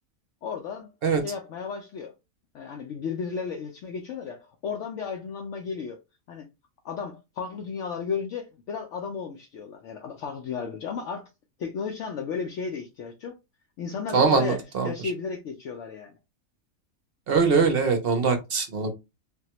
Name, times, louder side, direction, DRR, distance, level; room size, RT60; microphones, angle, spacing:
voice 1, 0.4-0.9 1.2-2.1 2.5-6.0 6.3-6.5 6.8-11.3 11.6-13.4 13.8-16.2, left 6 dB, 70° left, 0.8 m, -34 dB
voice 2, 14.1-14.9 17.3-18.9, right 5 dB, 55° right, 0.8 m, -22 dB
3.5 x 2.2 x 2.8 m
omnidirectional pair, 1.5 m